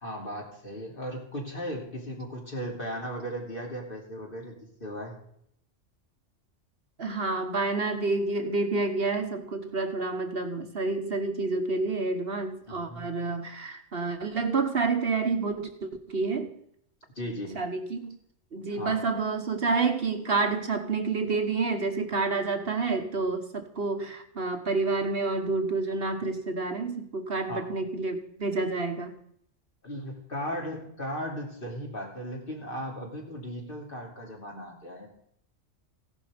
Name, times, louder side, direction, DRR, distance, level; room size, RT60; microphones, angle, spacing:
voice 1, 0.0-5.2 12.7-13.1 17.1-17.6 18.7-19.0 27.5-27.7 29.8-35.1, equal, 45° left, 0 dB, 3.2 m, -37 dB
voice 2, 7.0-16.5 17.5-18.2 18.5-29.2, right 3 dB, 55° right, 6 dB, 1.4 m, -29 dB
16.0 x 11.0 x 5.2 m, 0.70 s
omnidirectional pair, 1.3 m